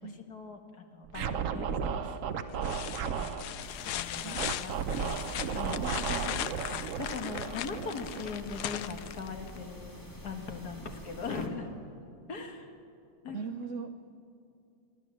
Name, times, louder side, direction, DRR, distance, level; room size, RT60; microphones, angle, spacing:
voice 1, 0.0-2.8 3.2-5.3 5.5-5.9 7.0-11.7 12.3-12.7 13.2-13.4, left 4 dB, 55° left, 5 dB, 1.9 m, -41 dB
Scratching (performance technique), 1.1-3.4 4.4-8.7, right 7 dB, 60° right, 0.8 m, -34 dB
sound 1, 1.8-2.2 2.6-9.6 11.4-11.5, left 11 dB, 70° left, 1.0 m, -38 dB
sound 2, 3.6-11.5, equal, 10° left, 1.8 m, -48 dB
voice 2, 4.2-4.6 5.8-7.0 13.3-14.0, right 5 dB, 85° right, 8 dB, 0.6 m, -41 dB
29.0 x 12.0 x 7.4 m, 2.6 s
omnidirectional pair, 2.2 m